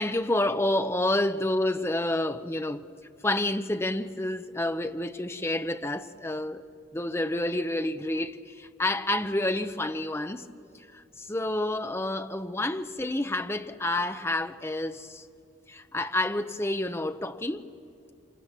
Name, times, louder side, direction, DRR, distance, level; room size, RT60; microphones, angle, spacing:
voice 1, 0.0-2.8 3.2-6.7 6.9-10.5 10.9-15.2 15.7-17.7, left 1 dB, 15° left, 0.7 m, -29 dB
27.5 x 27.0 x 7.4 m
head